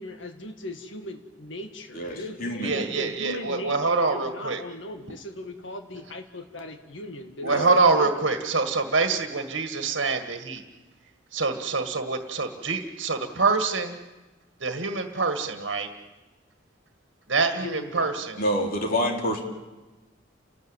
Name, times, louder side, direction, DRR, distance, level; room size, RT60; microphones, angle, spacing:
voice 1, 0.0-8.1 17.5-18.1, left 1 dB, 80° left, 6 dB, 2.0 m, -39 dB
voice 2, 1.9-2.8 7.4-7.8 18.4-19.4, equal, 50° left, 2 dB, 3.6 m, -27 dB
voice 3, 2.6-4.6 7.4-10.6 11.3-14.0 14.6-15.9 17.3-18.4, right 4 dB, 70° right, 6 dB, 1.8 m, -25 dB
30.0 x 13.5 x 9.0 m, 1.1 s
head